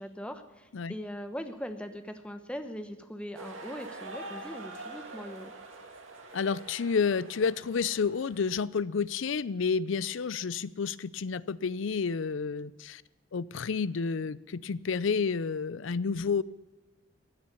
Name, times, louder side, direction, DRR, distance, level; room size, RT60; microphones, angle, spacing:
voice 1, 0.0-5.5, equal, 5° left, 8 dB, 1.0 m, -40 dB
sound 1, 3.3-8.6, right 2 dB, 90° right, 2.2 m, -45 dB
voice 2, 6.3-13.0 13.3-16.4, left 5 dB, 75° left, 19 dB, 0.5 m, -30 dB
15.5 x 9.7 x 6.9 m, 1.2 s
head